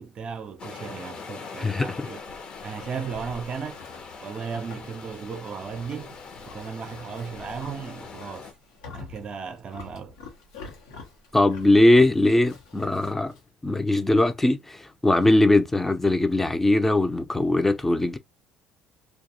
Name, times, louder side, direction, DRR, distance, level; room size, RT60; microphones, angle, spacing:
voice 1, 0.0-2.2 2.6-3.8 4.2-6.2 6.5-8.5 8.9-10.2, right 6 dB, 45° right, 0.5 m, -35 dB
sound 1, 0.6-8.5, left 5 dB, 45° left, 0.7 m, -42 dB
voice 2, 1.6-2.1 11.3-13.3 13.6-18.2, left 1 dB, 10° left, 0.5 m, -20 dB
Livestock farm animals working animals, 1.8-13.5, left 4 dB, 90° left, 1.0 m, -47 dB
2.3 x 2.3 x 2.7 m
hypercardioid pair, 65°, 2 cm